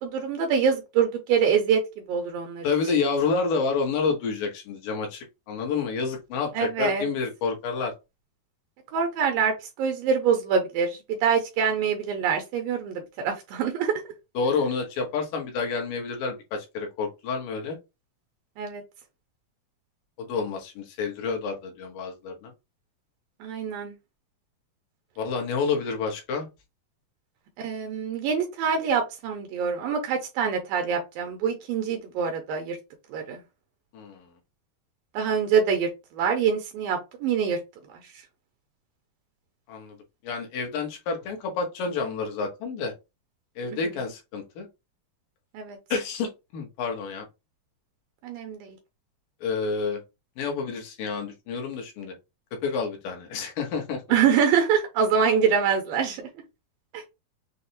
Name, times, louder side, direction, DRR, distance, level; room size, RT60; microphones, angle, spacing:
voice 1, 0.0-1.8 2.1-2.7 6.5-7.0 8.9-14.0 18.6-18.8 23.4-23.9 27.6-32.8 33.1-33.4 35.1-37.6 38.0-38.1 43.7-43.8 45.5-45.8 48.2-48.8 54.1-56.3 56.9-57.0, right 6 dB, 80° right, 2.3 m, -25 dB
voice 2, 2.6-7.9 14.3-17.8 20.2-22.5 25.2-26.5 33.9-34.3 39.7-40.0 40.2-42.9 43.6-44.7 45.9-47.3 49.4-50.0 50.4-52.2 52.6-54.0, left 4 dB, 70° left, 2.6 m, -29 dB
6.6 x 2.3 x 2.8 m
omnidirectional pair, 4.4 m